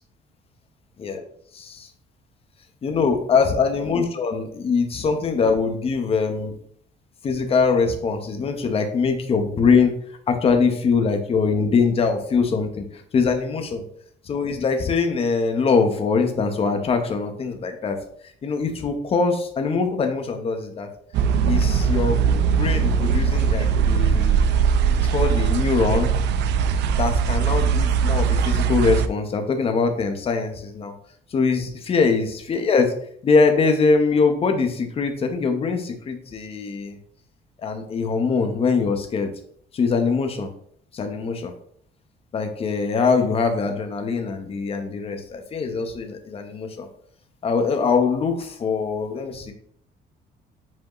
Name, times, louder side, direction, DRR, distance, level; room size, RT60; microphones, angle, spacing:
voice 1, 1.5-1.9 2.8-6.6 7.2-9.9 10.3-12.8 13.1-13.8 14.3-18.0 18.4-20.9 21.4-24.4 25.0-26.1 27.0-30.9 31.3-32.9 33.2-37.0 37.6-39.3 39.7-40.5 40.9-41.5 42.3-46.9 47.4-49.5, left 4 dB, 35° left, 5 dB, 1.0 m, -22 dB
sound 1, 21.1-29.1, right 6 dB, 85° right, 0.5 m, -20 dB
7.4 x 5.0 x 3.1 m, 0.63 s
cardioid pair, 165°, 17 cm